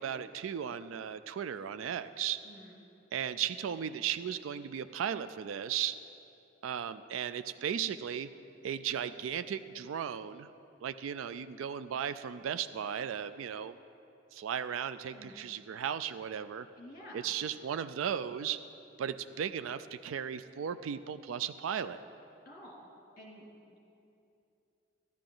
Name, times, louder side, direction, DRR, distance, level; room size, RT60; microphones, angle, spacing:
voice 1, 0.0-2.4 3.1-6.0 6.6-8.3 8.6-10.5 10.8-13.8 14.3-16.7 17.1-18.6 19.0-22.0, right 8 dB, 90° right, 11 dB, 0.3 m, -36 dB
voice 2, 2.4-2.8 15.1-15.4 16.8-17.3 22.4-22.9 23.2-23.9, equal, 45° left, -3 dB, 2.5 m, -51 dB
14.0 x 11.5 x 3.8 m, 2.7 s
head